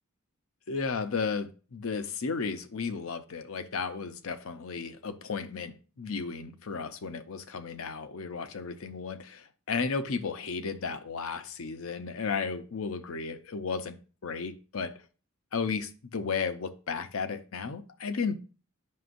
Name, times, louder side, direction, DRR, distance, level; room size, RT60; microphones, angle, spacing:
voice 1, 0.7-14.0 14.2-15.0 15.5-18.4, left 5 dB, 70° left, 0.6 m, -34 dB
9.4 x 6.0 x 2.5 m
head